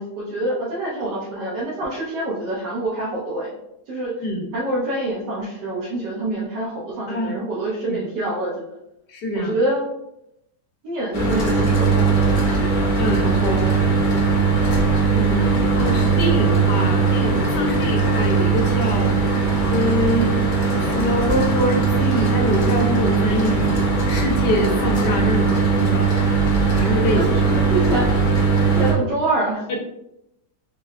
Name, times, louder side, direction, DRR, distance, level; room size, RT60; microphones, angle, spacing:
voice 1, 0.0-3.5 3.9-4.1 4.5-8.8 9.3-9.8 10.8-12.7 13.2-13.8 15.1-15.8 27.1-28.1 28.7-29.7, right 1 dB, 75° right, -6 dB, 1.5 m, -26 dB
voice 2, 4.2-4.5 7.1-7.4 7.9-8.1 9.1-9.6 13.0-14.1 15.8-19.2 19.7-20.4 20.7-26.1 26.8-27.6 29.7-29.8, left 1 dB, 75° left, 1 dB, 1.3 m, -25 dB
Mechanical fan, 11.1-28.9, right 4 dB, 40° left, 0.7 m, -19 dB
3.8 x 3.3 x 2.2 m, 0.82 s
omnidirectional pair, 1.8 m